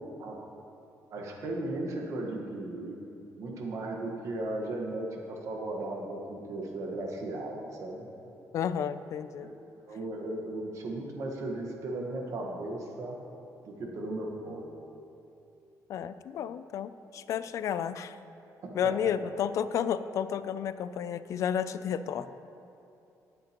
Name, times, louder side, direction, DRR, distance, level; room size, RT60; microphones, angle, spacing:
voice 1, 1.1-3.0 3.4-8.1 9.4-9.5 9.8-13.2 13.6-14.6 19.0-19.1, right 2 dB, 55° right, 0 dB, 1.4 m, -36 dB
voice 2, 8.5-9.5 15.9-18.2 18.7-22.4, left 8 dB, 55° left, 13 dB, 0.4 m, -32 dB
18.5 x 7.6 x 3.0 m, 2.7 s
cardioid pair, 170°, 7 cm